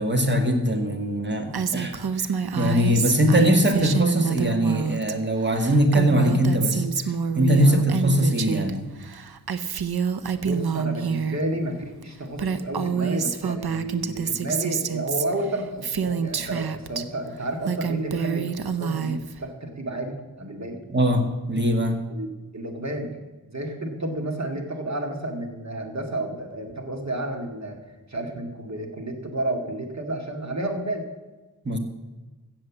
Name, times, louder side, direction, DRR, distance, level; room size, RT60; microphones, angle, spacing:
voice 1, 0.0-2.3 2.5-8.8 20.9-22.0 31.7-31.8, equal, 30° right, 5 dB, 1.9 m, -22 dB
Female speech woman speaking, 1.5-5.1 5.4-8.7 9.0-11.4 12.0-12.1 12.3-17.0 17.5-19.4, right 6 dB, 80° right, 0.8 m, -27 dB
voice 2, 10.4-20.8 22.1-23.2 23.5-27.8 28.1-31.1, right 1 dB, 45° right, 4 dB, 2.2 m, -31 dB
15.5 x 7.3 x 7.4 m, 1.2 s
wide cardioid pair, 85°, 37 cm